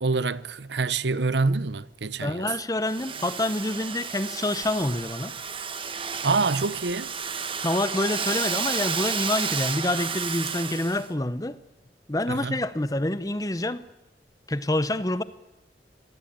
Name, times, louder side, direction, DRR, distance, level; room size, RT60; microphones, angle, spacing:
voice 1, 0.0-2.5 6.2-7.1 12.3-12.6, right 4 dB, 85° right, 0.8 m, -26 dB
voice 2, 2.2-5.3 7.6-11.6 12.1-13.8 14.5-15.2, left 1 dB, 20° left, 0.9 m, -27 dB
Domestic sounds home sounds, 2.8-11.1, right 6 dB, 30° right, 1.4 m, -32 dB
25.5 x 19.0 x 8.8 m
head